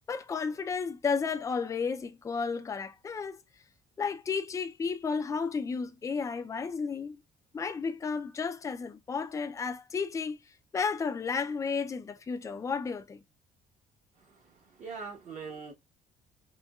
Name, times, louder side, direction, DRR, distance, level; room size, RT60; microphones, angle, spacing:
voice 1, 0.1-3.4 4.0-7.2 7.5-10.4 10.7-13.2, left 5 dB, 20° left, 0.4 m, -32 dB
voice 2, 14.3-15.7, right 5 dB, 45° right, 1.2 m, -42 dB
4.3 x 2.2 x 2.3 m
cardioid pair, 110°, 17 cm